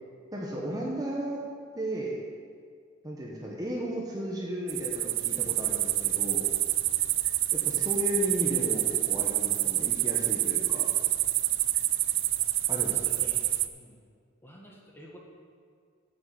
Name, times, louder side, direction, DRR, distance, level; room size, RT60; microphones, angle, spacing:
voice 1, 0.3-1.4 1.7-2.2 3.0-6.5 7.5-10.9 12.7-13.4, equal, 20° right, -3 dB, 1.2 m, -34 dB
sound 1, 4.7-13.7, right 16 dB, 65° right, 0.4 m, -27 dB
voice 2, 12.8-14.0 14.4-15.2, equal, 10° left, -2 dB, 1.6 m, -52 dB
7.5 x 7.4 x 7.9 m, 2.2 s
head